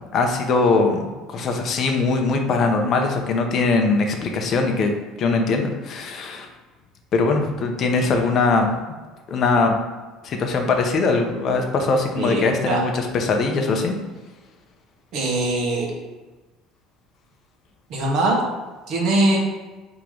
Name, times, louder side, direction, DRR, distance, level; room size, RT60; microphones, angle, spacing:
voice 1, 0.1-4.9 5.2-6.5 7.1-8.7 9.3-9.7 10.2-14.0, left 3 dB, 40° left, 3 dB, 0.6 m, -21 dB
voice 2, 12.1-12.8 15.1-15.9 17.9-18.4 18.9-19.4, right 2 dB, 50° right, -1 dB, 1.0 m, -21 dB
3.7 x 3.0 x 4.8 m, 1.3 s
cardioid pair, 155°, 0 cm